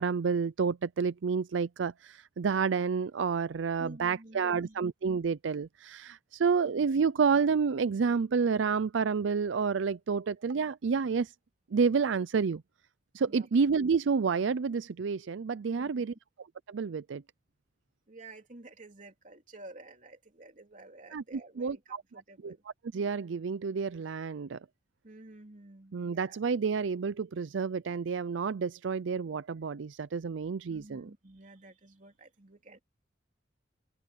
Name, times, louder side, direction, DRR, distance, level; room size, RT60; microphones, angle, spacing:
voice 1, 0.0-11.3 11.7-12.6 13.1-16.1 16.7-17.2 21.1-22.0 22.4-22.5 22.9-24.6 25.9-31.1, right 5 dB, 75° right, 0.5 m, -29 dB
voice 2, 3.8-4.8 13.2-13.5 15.7-16.1 18.1-22.6 25.0-26.4 30.7-32.8, right 2 dB, 45° right, 3.2 m, -51 dB
open air
head